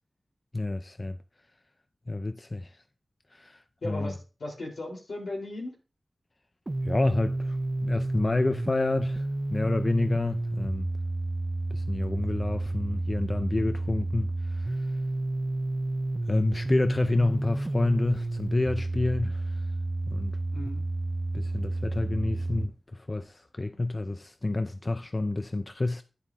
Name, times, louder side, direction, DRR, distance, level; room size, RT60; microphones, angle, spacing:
voice 1, 0.5-1.2 2.1-2.8 3.3-4.1 6.8-10.9 11.7-14.9 16.3-19.6 20.1-20.3 21.3-26.0, left 2 dB, 35° left, 0.5 m, -29 dB
voice 2, 3.8-5.7 20.5-20.8, left 2 dB, 80° left, 3.8 m, -36 dB
sound 1, 6.7-22.7, right 2 dB, 30° right, 0.4 m, -31 dB
11.0 x 10.5 x 2.7 m
wide cardioid pair, 80°, 0 cm